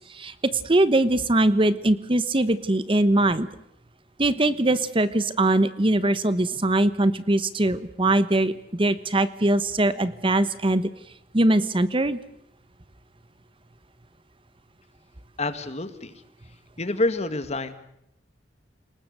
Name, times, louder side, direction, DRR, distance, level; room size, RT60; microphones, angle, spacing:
voice 1, 0.6-3.5 4.2-10.9 11.3-12.2, right 1 dB, 30° right, 14 dB, 1.0 m, -22 dB
voice 2, 15.4-16.1 16.8-17.7, left 2 dB, 40° left, 11 dB, 2.0 m, -27 dB
29.0 x 20.0 x 6.6 m, 0.78 s
head